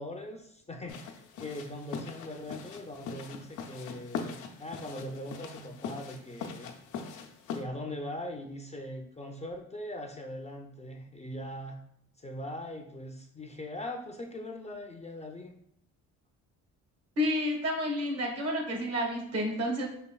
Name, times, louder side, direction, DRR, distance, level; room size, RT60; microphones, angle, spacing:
voice 1, 0.0-6.7 7.5-11.8 12.2-15.5, left 1 dB, 20° left, 3 dB, 0.5 m, -41 dB
sound 1, 0.9-7.6, left 5 dB, 75° left, 0.6 m, -41 dB
voice 2, 17.2-19.9, left 1 dB, 55° right, 1 dB, 1.4 m, -30 dB
5.2 x 4.3 x 2.3 m, 0.71 s
cardioid pair, 90°, 30 cm